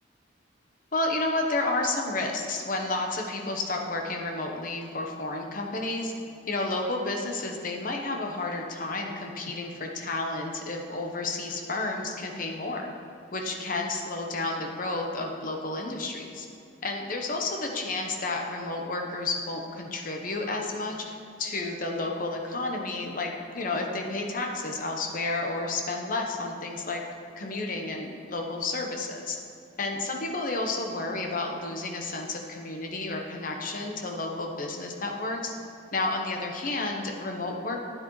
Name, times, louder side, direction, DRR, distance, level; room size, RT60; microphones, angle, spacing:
voice 1, 0.9-6.1 6.5-12.9 13.3-16.5 16.8-27.0 27.4-29.4 29.8-35.5 35.9-37.9, left 2 dB, 45° left, 2 dB, 1.0 m, -31 dB
12.0 x 9.4 x 3.2 m, 2.6 s
head